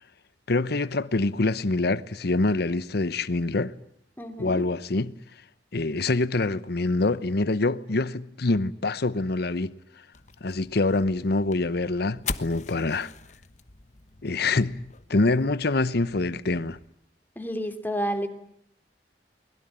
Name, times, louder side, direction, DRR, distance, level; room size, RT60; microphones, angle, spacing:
voice 1, 0.5-3.7 4.4-5.1 5.7-9.7 10.4-13.1 14.2-14.8 15.1-16.8, left 2 dB, 65° left, 0.9 m, -25 dB
voice 2, 4.2-4.6 17.4-18.3, equal, 10° left, 2.6 m, -30 dB
sound 1, 10.1-16.9, left 5 dB, 45° left, 1.1 m, -41 dB
23.0 x 21.5 x 9.0 m
head